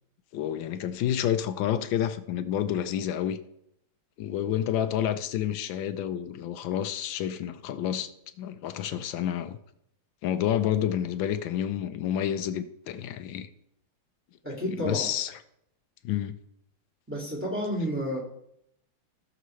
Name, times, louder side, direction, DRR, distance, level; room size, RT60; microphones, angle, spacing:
voice 1, 0.3-3.4 4.2-8.1 8.4-9.6 10.2-13.5 14.7-15.4 16.0-16.4, left 10 dB, 75° left, 1.3 m, -29 dB
voice 2, 14.4-15.1 17.1-18.2, equal, 5° right, 1.9 m, -30 dB
16.0 x 6.6 x 3.1 m
omnidirectional pair, 2.3 m